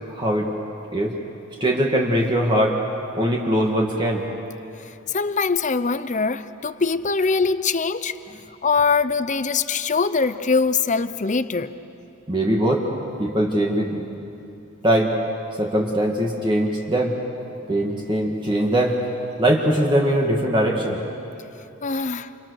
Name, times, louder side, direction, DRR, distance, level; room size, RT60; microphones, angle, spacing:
voice 1, 0.1-0.5 0.9-1.1 1.6-2.8 3.2-4.2 12.3-12.9 13.2-14.0 14.8-15.1 15.6-17.2 17.7-19.0 19.4-21.0, right 1 dB, 20° right, -1 dB, 2.2 m, -21 dB
voice 2, 5.1-8.1 8.6-11.7 21.8-22.3, left 4 dB, 35° left, 13 dB, 0.7 m, -22 dB
29.0 x 29.0 x 6.6 m, 2.8 s
head